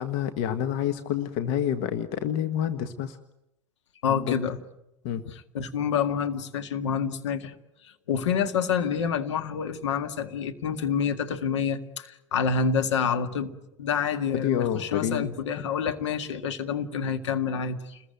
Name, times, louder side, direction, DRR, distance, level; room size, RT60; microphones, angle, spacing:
voice 1, 0.0-3.2 4.1-4.4 5.0-5.3 14.3-15.3, left 9 dB, 55° left, 9 dB, 1.5 m, -28 dB
voice 2, 4.0-4.6 5.3-7.5 7.8-13.5 13.8-18.0, left 6 dB, 70° left, 7 dB, 1.9 m, -28 dB
29.5 x 21.5 x 9.3 m, 0.86 s
figure-of-eight pair, 75°, 16 cm